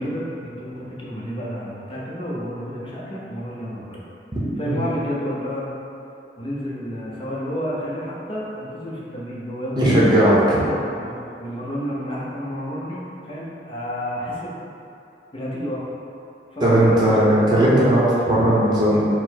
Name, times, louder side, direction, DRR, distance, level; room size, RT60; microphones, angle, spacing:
voice 1, 0.0-4.0 4.6-5.7 6.4-10.3 10.6-14.5 15.3-15.8 16.5-17.0 17.2-17.7, equal, 30° left, -6 dB, 0.7 m, -30 dB
voice 2, 9.8-10.6 16.6-19.0, right 1 dB, 25° right, -8 dB, 0.7 m, -17 dB
4.3 x 2.0 x 4.3 m, 2.7 s
head